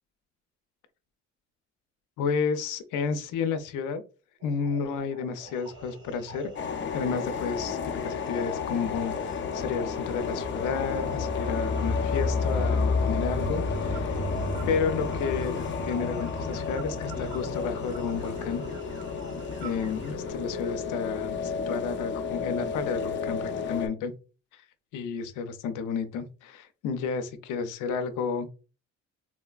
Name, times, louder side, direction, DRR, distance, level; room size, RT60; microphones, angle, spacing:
voice 1, 2.2-4.0 4.4-6.5 6.9-14.3 14.7-15.5 15.8-18.6 19.6-21.4 21.7-24.1 24.5-24.6 24.9-28.5, left 5 dB, 90° left, 10 dB, 0.5 m, -31 dB
sound 1, 4.4-20.3, right 5 dB, 85° right, 0.9 m, -47 dB
sound 2, 5.5-20.1, left 2 dB, 15° right, 1.4 m, -34 dB
sound 3, 6.6-23.9, left 6 dB, 40° left, 0.5 m, -32 dB
3.8 x 2.1 x 2.3 m, 0.34 s
cardioid pair, 90°, 30 cm